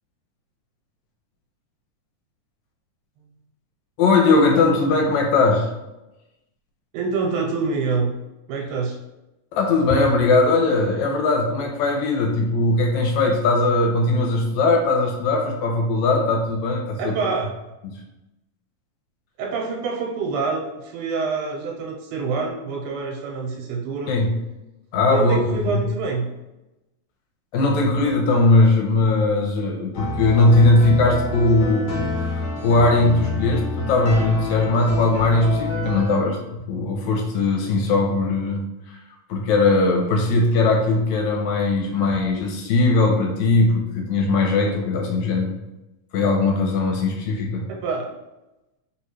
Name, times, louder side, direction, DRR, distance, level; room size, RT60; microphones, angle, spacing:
voice 1, 4.0-5.7 9.5-17.1 24.1-24.3 24.9-25.8 27.5-39.0 39.3-45.5 46.1-47.7, left 2 dB, 75° left, 0 dB, 1.9 m, -19 dB
voice 2, 6.9-8.1 8.5-9.0 17.0-17.5 19.4-24.1 25.1-26.4 47.7-48.1, right 4 dB, 85° right, 0 dB, 2.1 m, -26 dB
sound 1, 29.9-36.2, left 1 dB, 60° left, 1.2 m, -27 dB
4.2 x 3.5 x 3.0 m, 0.99 s
omnidirectional pair, 3.6 m